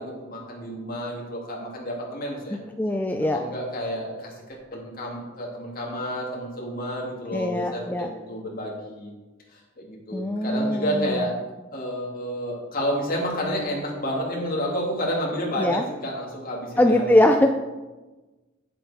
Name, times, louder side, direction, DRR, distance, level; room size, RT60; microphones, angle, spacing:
voice 1, 0.0-2.6 3.3-9.1 9.5-11.3 11.7-17.4, equal, 45° left, -2 dB, 2.3 m, -30 dB
voice 2, 2.8-3.4 7.3-8.1 10.1-11.3 15.6-15.8 16.8-17.5, left 1 dB, 10° left, 4 dB, 0.3 m, -21 dB
8.9 x 7.6 x 4.2 m, 1.2 s
head